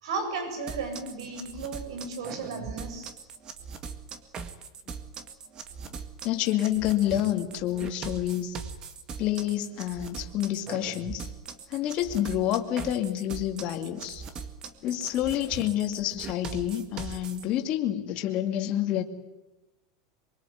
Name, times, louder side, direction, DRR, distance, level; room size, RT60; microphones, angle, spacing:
voice 1, 0.0-3.1, right 4 dB, 80° right, 7 dB, 7.5 m, -34 dB
sound 1, 0.7-17.4, right 5 dB, 25° right, 1.9 m, -40 dB
voice 2, 6.2-8.6 9.2-11.3 11.7-14.2 14.8-19.0, left 12 dB, 35° left, 4 dB, 2.4 m, -28 dB
24.0 x 23.5 x 9.4 m, 1.0 s
supercardioid pair, 160°, 3 cm